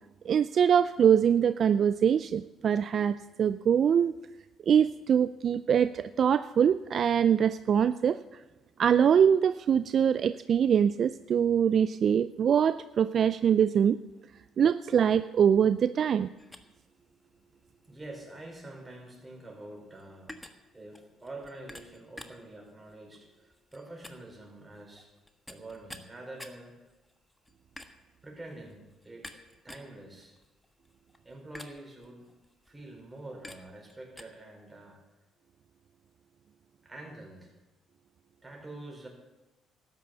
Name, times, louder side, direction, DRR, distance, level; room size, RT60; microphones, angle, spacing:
voice 1, 0.3-4.1 4.7-8.4 8.8-14.0 14.6-16.3, right 8 dB, 55° right, 14 dB, 0.4 m, -24 dB
sound 1, 16.4-34.2, left 1 dB, 10° left, 1.4 m, -51 dB
voice 2, 16.9-25.1 25.5-26.8 28.2-30.4 31.2-32.2 32.7-35.0 36.8-37.6 38.4-39.1, right 2 dB, 20° right, 1 dB, 4.7 m, -47 dB
13.0 x 9.9 x 6.7 m, 1.1 s
supercardioid pair, 65°, 0 cm